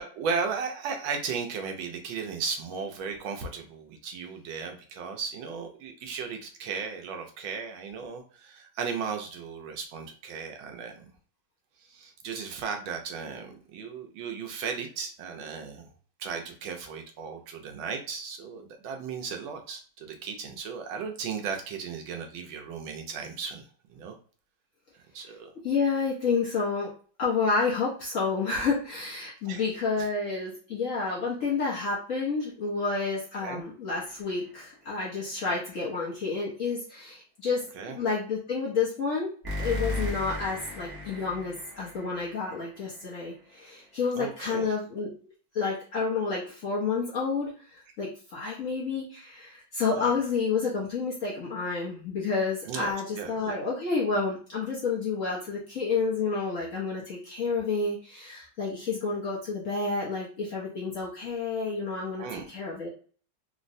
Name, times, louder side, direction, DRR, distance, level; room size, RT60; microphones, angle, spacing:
voice 1, 0.0-11.1 11.9-15.9 16.2-24.1 25.1-25.5 29.4-29.6 30.0-30.1 33.4-33.6 37.7-38.0 44.2-44.7 50.0-50.2 52.7-53.6 62.2-62.5, right 5 dB, 80° right, 3 dB, 1.4 m, -36 dB
voice 2, 25.6-26.9 27.2-37.6 37.9-39.3 39.6-45.1 45.5-62.9, left 4 dB, 60° left, -5 dB, 0.9 m, -30 dB
sound 1, 33.9-34.6 39.4-43.1, left 2 dB, 30° right, 0.4 m, -36 dB
3.8 x 2.1 x 2.5 m, 0.42 s
omnidirectional pair, 2.2 m